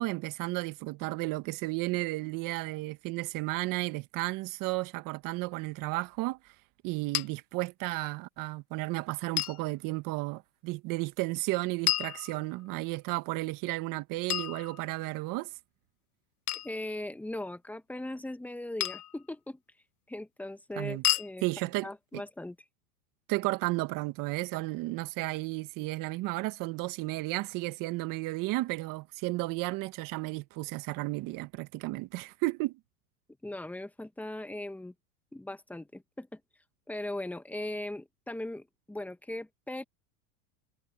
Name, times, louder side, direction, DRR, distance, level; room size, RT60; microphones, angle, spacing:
voice 1, 0.0-6.4 6.8-15.5 20.8-21.0 21.4-21.9 22.1-22.2 23.3-32.8, right 21 dB, 50° right, 1.6 m, -33 dB
sound 1, 7.1-7.3 9.4-9.6 11.9-12.8 14.3-15.2 16.5-16.8 18.8-19.2 21.0-21.3, left 14 dB, 90° left, 1.8 m, -31 dB
voice 2, 16.6-19.6 20.1-21.4 21.8-22.6 33.4-34.9 35.3-36.4 36.9-39.8, left 1 dB, 5° left, 1.4 m, -39 dB
supercardioid pair, 120°, 43 cm